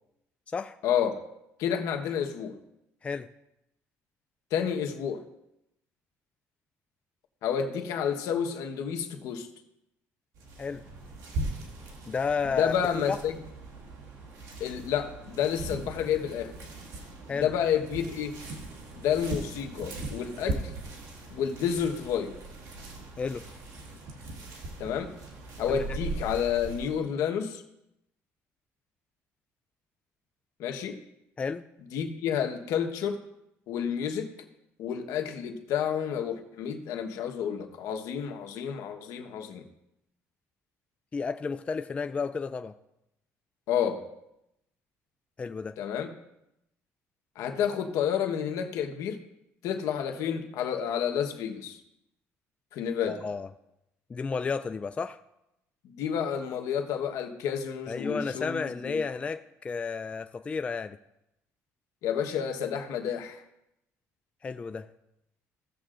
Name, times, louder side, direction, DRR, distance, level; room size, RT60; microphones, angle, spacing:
voice 1, 0.8-1.2 1.6-2.6 4.5-5.2 7.4-9.5 12.5-13.4 14.6-16.5 17.3-18.3 18.9-20.7 21.3-22.3 24.8-25.1 25.6-27.6 30.6-31.0 31.9-33.2 33.7-34.3 34.8-39.7 43.7-44.0 45.8-46.1 47.4-49.2 49.6-51.8 52.7-53.2 55.8-59.0 62.0-63.4, left 8 dB, 80° left, 4 dB, 1.2 m, -30 dB
sound 1, 10.3-27.0, right 2 dB, 75° right, 2.0 m, -39 dB
voice 2, 12.1-12.7 13.1-13.2 17.3-17.5 23.2-23.4 25.7-25.8 31.4-31.6 41.1-42.7 45.4-45.8 53.1-53.5 54.1-55.2 57.9-61.0 64.4-64.9, left 5 dB, 20° left, 9 dB, 0.3 m, -32 dB
16.5 x 7.6 x 2.5 m, 0.85 s
cardioid pair, 120°, 6 cm